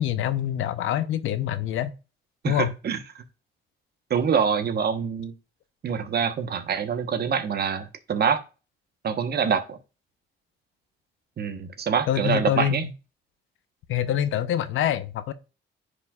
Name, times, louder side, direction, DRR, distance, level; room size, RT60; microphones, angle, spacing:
voice 1, 0.0-1.9 2.4-2.7 12.1-12.9 13.9-15.3, left 11 dB, 85° left, 0.8 m, -25 dB
voice 2, 2.4-3.2 4.1-5.3 5.8-8.4 9.0-9.8 11.4-12.8, right 6 dB, 55° right, 1.2 m, -25 dB
9.7 x 5.1 x 2.4 m
cardioid pair, 90°, 20 cm